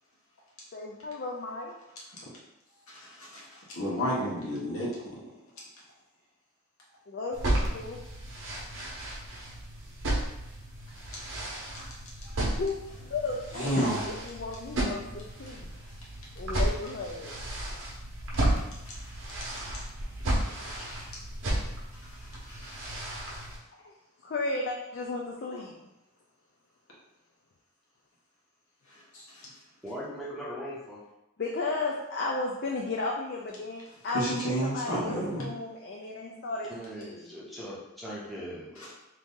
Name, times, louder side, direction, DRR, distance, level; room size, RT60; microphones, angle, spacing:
voice 1, 0.7-1.7 7.1-8.0 12.1-15.6 16.4-17.4 23.8-23.9 24.2-25.7 31.4-36.7 37.0-37.3, left 3 dB, 50° left, -1 dB, 0.4 m, -34 dB
voice 2, 2.9-5.2 11.7-11.9 13.5-14.0 18.8-19.2 20.4-21.2 22.0-22.9 28.9-29.5 34.1-35.5, equal, 80° left, -5 dB, 1.1 m, -33 dB
sound 1, 7.3-23.6, right 1 dB, 60° right, 0.8 m, -33 dB
voice 3, 29.8-31.0 36.7-38.9, equal, ahead, -8 dB, 0.6 m, -40 dB
2.9 x 2.6 x 3.6 m, 0.93 s
head